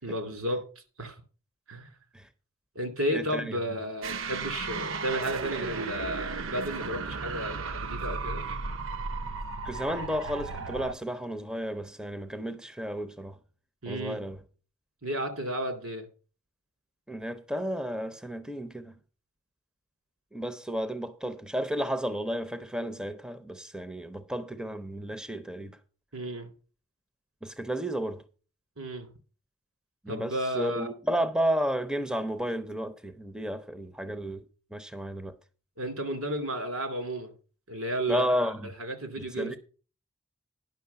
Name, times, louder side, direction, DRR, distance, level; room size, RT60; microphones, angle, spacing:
voice 1, 0.0-1.2 1.7-1.9 2.7-8.5 13.8-14.2 15.0-16.0 26.1-26.5 28.8-29.1 30.1-30.9 35.8-37.3 37.7-38.5 38.8-39.6, equal, 80° right, 2.7 m, -33 dB
voice 2, 3.1-3.6 9.6-13.4 13.9-14.4 17.1-19.0 20.3-25.8 27.4-28.2 30.0-34.4 34.7-35.3 38.1-38.7 39.2-39.6, equal, 5° right, 0.5 m, -32 dB
sound 1, 4.0-10.9, right 4 dB, 60° right, 0.6 m, -35 dB
10.5 x 6.0 x 6.8 m
head